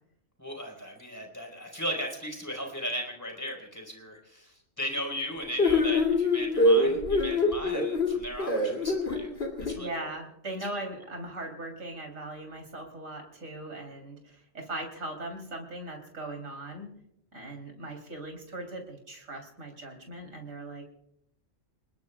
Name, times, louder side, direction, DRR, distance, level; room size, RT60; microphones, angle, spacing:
voice 1, 0.4-9.3 9.6-10.1 10.7-10.8, equal, 15° left, 1 dB, 4.3 m, -37 dB
sound 1, 5.6-9.7, left 2 dB, 50° left, 3.1 m, -24 dB
voice 2, 9.8-16.9 17.3-20.9, right 2 dB, 75° right, 2 dB, 3.8 m, -39 dB
29.0 x 20.5 x 2.4 m, 0.75 s
omnidirectional pair, 1.4 m